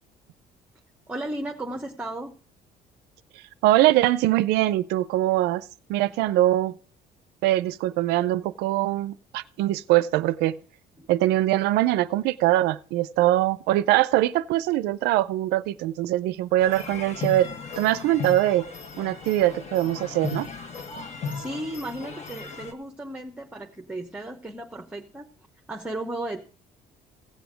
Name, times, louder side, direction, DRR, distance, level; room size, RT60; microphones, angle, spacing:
voice 1, 1.1-2.3 11.0-11.1 21.0-25.3 25.7-26.4, right 1 dB, 10° right, 3 dB, 0.9 m, -35 dB
voice 2, 3.6-5.6 5.9-6.7 7.4-10.6 11.1-17.5 17.8-18.7 19.0-20.5, right 15 dB, 90° right, 16 dB, 0.5 m, -22 dB
sound 1, 16.6-22.7, left 5 dB, 40° left, 1.3 m, -36 dB
15.5 x 7.1 x 5.0 m, 0.42 s
cardioid pair, 110°, 17 cm